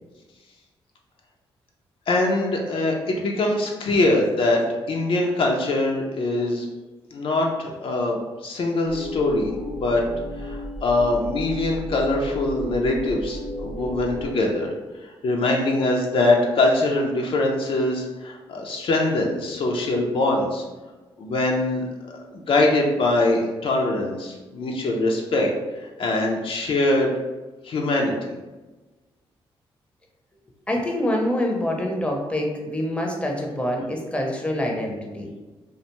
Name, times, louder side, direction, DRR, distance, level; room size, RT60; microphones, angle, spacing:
voice 1, 2.1-4.6 4.9-6.7 7.1-10.0 10.4-14.7 15.0-20.6 21.2-21.8 22.1-25.5 25.8-27.1 27.6-28.3, left 2 dB, 60° left, 0 dB, 0.4 m, -23 dB
sound 1, 8.8-14.3, left 1 dB, 85° right, 0.6 m, -33 dB
voice 2, 30.7-35.3, left 1 dB, 10° left, 0 dB, 0.6 m, -26 dB
2.4 x 2.2 x 2.9 m, 1.2 s
cardioid pair, 65°, 10 cm